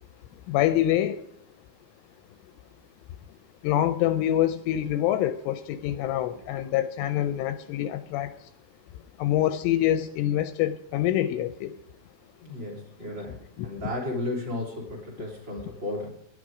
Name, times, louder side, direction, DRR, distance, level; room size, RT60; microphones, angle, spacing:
voice 1, 0.3-1.3 3.6-8.5 9.2-11.8 13.6-13.7, left 12 dB, 80° left, 12 dB, 3.0 m, -26 dB
voice 2, 12.4-16.1, left 1 dB, 25° right, 0 dB, 3.7 m, -34 dB
19.5 x 11.5 x 4.9 m, 0.74 s
omnidirectional pair, 5.9 m